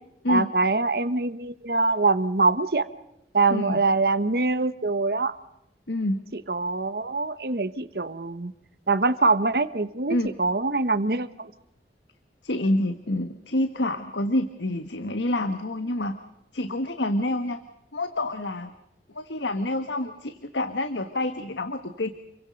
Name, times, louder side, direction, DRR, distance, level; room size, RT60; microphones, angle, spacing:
voice 1, 0.3-2.9 3.3-5.3 6.3-8.5 8.9-11.5, right 3 dB, 60° right, 12 dB, 1.0 m, -24 dB
voice 2, 5.9-6.2 10.1-10.3 12.4-16.2 16.5-17.6 17.9-18.7 19.1-22.1, left 1 dB, 90° left, 8 dB, 1.5 m, -27 dB
29.0 x 23.5 x 5.3 m, 0.82 s
head